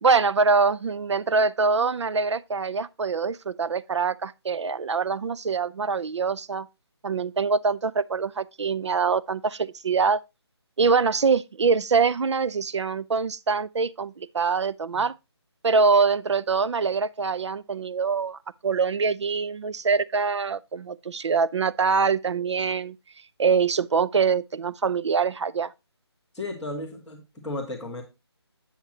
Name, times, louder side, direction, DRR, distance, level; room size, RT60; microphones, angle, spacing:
voice 1, 0.0-6.7 7.0-10.2 10.8-15.1 15.6-23.0 23.4-25.7, right 5 dB, 85° right, 0.4 m, -24 dB
voice 2, 26.3-28.0, left 2 dB, ahead, 0.6 m, -34 dB
8.1 x 7.2 x 2.8 m
figure-of-eight pair, 165°, 14 cm